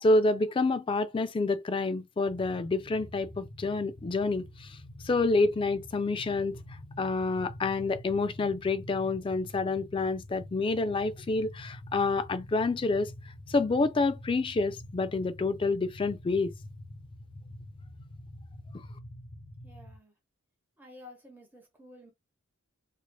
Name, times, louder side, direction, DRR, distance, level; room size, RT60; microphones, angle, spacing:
voice 1, 0.0-4.8 5.0-6.6 7.0-13.1 13.5-16.5 18.7-18.8, left 3 dB, 25° left, 0.3 m, -28 dB
sound 1, 2.3-20.0, left 1 dB, 85° left, 1.1 m, -47 dB
voice 2, 19.6-20.1 20.8-22.1, left 1 dB, 10° right, 1.0 m, -52 dB
3.2 x 2.7 x 2.3 m
head